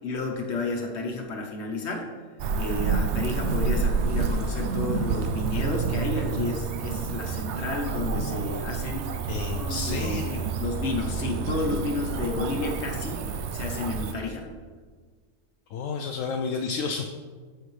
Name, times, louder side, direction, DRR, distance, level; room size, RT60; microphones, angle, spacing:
voice 1, 0.0-2.1 2.5-9.2 9.5-10.2 10.6-13.2 13.5-14.5, left 3 dB, 55° left, 2 dB, 1.4 m, -31 dB
Cricket / Motor vehicle (road), 2.4-14.1, right 5 dB, 65° right, 0.8 m, -29 dB
voice 2, 9.3-10.5 15.7-17.1, left 5 dB, 80° left, 3 dB, 1.0 m, -31 dB
14.0 x 5.8 x 3.2 m, 1.6 s
omnidirectional pair, 1.4 m